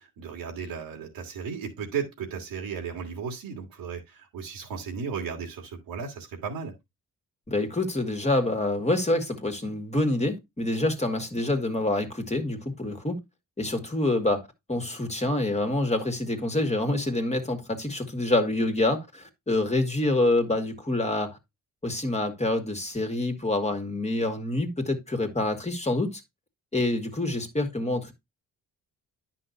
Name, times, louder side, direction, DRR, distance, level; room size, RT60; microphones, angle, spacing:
voice 1, 0.0-6.7, right 6 dB, 90° right, 2.8 m, -35 dB
voice 2, 7.5-13.2 13.6-21.4 21.8-26.2 26.7-28.1, left 2 dB, 20° left, 2.1 m, -26 dB
10.0 x 5.9 x 2.7 m
cardioid pair, 75°, 34 cm